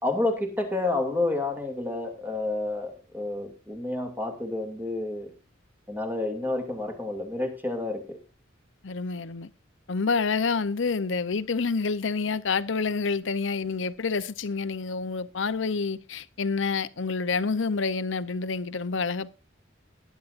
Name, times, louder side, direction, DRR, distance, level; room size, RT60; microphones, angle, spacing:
voice 1, 0.0-5.3 5.9-8.2, left 2 dB, 10° right, 2.5 m, -29 dB
voice 2, 8.8-9.5 9.9-19.3, left 4 dB, 70° left, 0.7 m, -28 dB
19.5 x 10.0 x 2.6 m
head